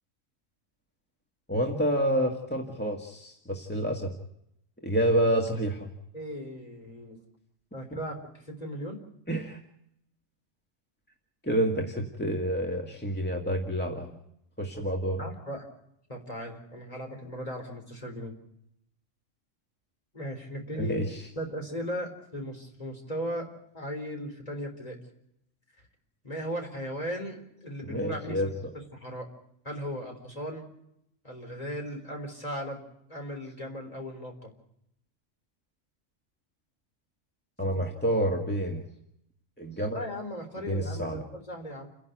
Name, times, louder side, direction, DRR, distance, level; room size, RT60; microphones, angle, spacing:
voice 1, 1.5-4.1 4.8-5.9 7.9-8.0 9.3-9.6 11.4-14.1 14.6-15.2 20.8-21.2 27.8-28.5 37.6-38.8 39.6-40.0 40.7-41.2, equal, 10° left, 1 dB, 1.8 m, -28 dB
voice 2, 6.1-7.2 7.7-9.0 15.2-15.6 16.1-18.3 20.1-21.0 21.4-23.5 23.7-25.0 26.2-28.4 28.9-29.3 29.6-30.6 31.2-32.8 33.1-34.5 37.7-37.9 39.9-41.9, equal, 30° left, 2 dB, 4.2 m, -37 dB
29.5 x 11.0 x 9.3 m, 0.78 s
omnidirectional pair, 1.3 m